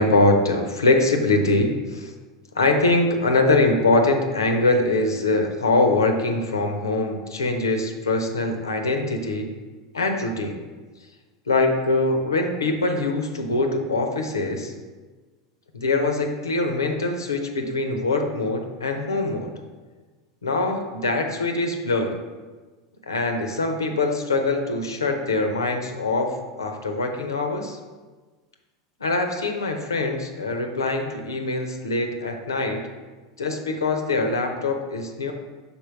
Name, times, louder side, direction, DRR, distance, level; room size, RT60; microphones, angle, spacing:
voice 1, 0.0-2.1 2.5-9.5 9.9-10.6 11.5-14.7 15.7-19.5 20.4-22.1 23.1-27.8 29.0-32.8 33.4-35.3, left 2 dB, 85° left, 4 dB, 0.7 m, -23 dB
5.4 x 4.3 x 4.5 m, 1.3 s
figure-of-eight pair, 85°, 2 cm